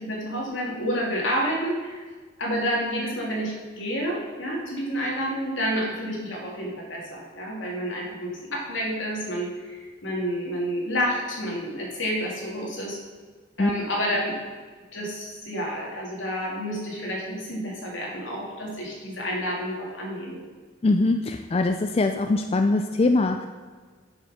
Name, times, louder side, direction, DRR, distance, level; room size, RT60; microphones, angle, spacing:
voice 1, 0.0-2.0 2.4-13.0 13.6-14.3 14.9-20.4, equal, 80° left, -2 dB, 2.6 m, -29 dB
voice 2, 20.8-23.5, left 2 dB, 30° left, 6 dB, 0.4 m, -22 dB
7.4 x 6.4 x 6.5 m, 1.4 s
head